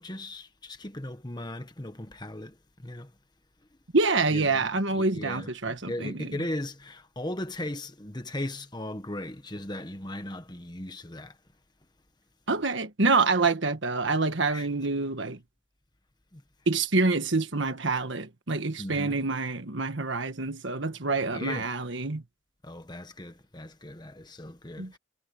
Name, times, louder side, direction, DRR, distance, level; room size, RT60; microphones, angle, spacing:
voice 1, 0.0-2.5 2.8-3.1 4.3-11.3 14.5-14.7 16.3-16.4 18.8-19.2 21.3-21.6 22.6-25.0, left 1 dB, 20° left, 1.4 m, -37 dB
voice 2, 3.9-6.4 12.5-15.4 16.7-22.2 24.8-24.9, right 3 dB, 65° right, 1.5 m, -27 dB
head